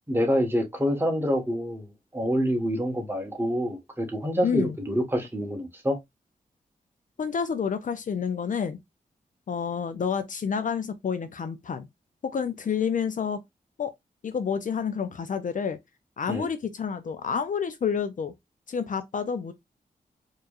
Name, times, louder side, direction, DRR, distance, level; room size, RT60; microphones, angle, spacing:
voice 1, 0.1-1.9 2.1-6.0 16.3-16.5, equal, 15° right, 1.3 m, -26 dB
voice 2, 4.4-4.8 7.2-8.8 9.5-11.9 12.2-13.4 13.8-13.9 14.2-15.8 16.2-18.3 18.7-19.5, left 6 dB, 55° left, 0.5 m, -29 dB
4.5 x 3.1 x 2.4 m
wide cardioid pair, 110°, 16 cm